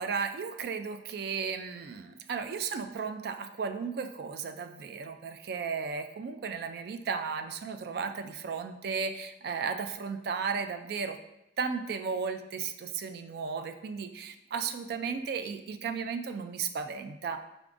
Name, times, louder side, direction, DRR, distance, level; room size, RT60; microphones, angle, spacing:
voice 1, 0.0-11.2 11.6-17.4, right 5 dB, 60° right, 8 dB, 0.3 m, -35 dB
4.8 x 3.5 x 2.5 m, 0.87 s
head